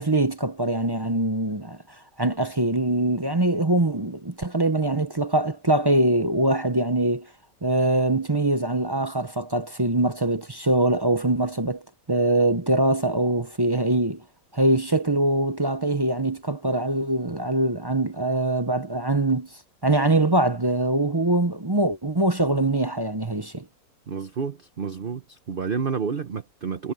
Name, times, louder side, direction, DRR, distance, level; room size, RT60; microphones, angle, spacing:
voice 1, 0.0-1.8 2.2-7.3 7.6-11.8 12.1-14.2 14.5-19.5 19.8-23.7, right 2 dB, 25° right, 0.6 m, -23 dB
voice 2, 24.1-26.9, right 6 dB, 40° right, 0.9 m, -30 dB
omnidirectional pair, 1.7 m